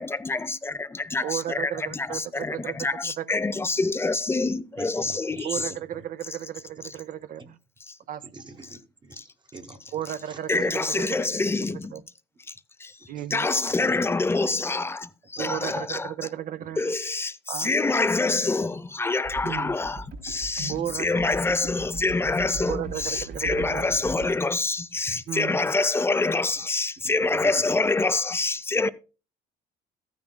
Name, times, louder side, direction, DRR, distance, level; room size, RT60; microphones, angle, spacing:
voice 1, 0.0-5.7 7.9-8.0 9.2-9.3 10.5-11.9 12.5-12.6 12.8-13.0 13.3-16.1 16.8-28.9, left 3 dB, 15° left, 0.5 m, -26 dB
voice 2, 1.2-2.8 3.0-3.4 5.4-7.6 8.1-8.2 9.9-11.2 11.7-12.0 13.1-13.5 15.4-16.8 17.5-17.7 19.4-19.7 20.7-21.3 22.7-23.8 25.3-25.7, right 11 dB, 55° right, 0.5 m, -34 dB
voice 3, 4.7-5.8 8.3-9.2 9.5-10.0 10.3-10.4 13.1-13.2 13.7-13.8 15.4-15.5 18.0-18.1 24.0-24.1 25.0-25.1 27.0-27.5, right 3 dB, 25° right, 1.0 m, -44 dB
sound 1, 19.2-24.3, right 4 dB, 70° right, 5.2 m, -39 dB
14.0 x 9.6 x 2.2 m
cardioid pair, 110°, 17 cm